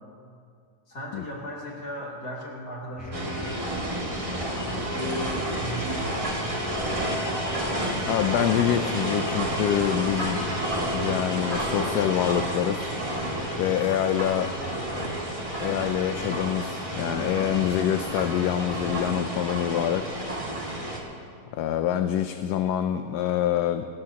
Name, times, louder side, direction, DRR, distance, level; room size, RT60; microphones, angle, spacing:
voice 1, 0.9-3.6 4.5-6.5, left 1 dB, 60° left, -4 dB, 3.4 m, -36 dB
sound 1, 3.0-3.6 4.0-4.8 5.3-6.1 6.6-7.4 7.9-8.7 9.2-9.9 10.4-11.2 11.7-12.5 13.0-13.8 14.3-15.1 15.6-16.4 16.9-17.7 18.1-18.9, left 1 dB, 10° left, 0.6 m, -42 dB
sound 2, 3.1-21.0, right 1 dB, 20° right, 2.0 m, -30 dB
voice 2, 8.1-10.4 10.9-12.9 13.6-14.5 15.6-20.0 21.5-23.9, left 11 dB, 85° left, 8 dB, 1.2 m, -26 dB
27.0 x 13.5 x 2.9 m, 2.3 s
omnidirectional pair, 1.7 m